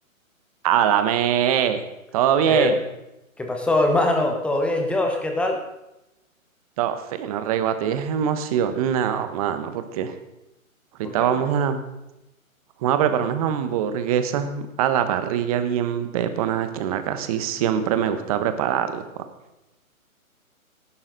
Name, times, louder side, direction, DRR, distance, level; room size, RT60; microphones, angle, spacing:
voice 1, 0.6-1.8 2.1-2.8 6.8-10.1 11.0-11.8 12.8-19.0, right 9 dB, 25° right, 9 dB, 1.1 m, -23 dB
voice 2, 3.4-5.6 11.0-11.1, left 2 dB, 5° left, 2 dB, 0.9 m, -22 dB
18.0 x 11.5 x 4.0 m, 0.92 s
hypercardioid pair, 145°, 42 cm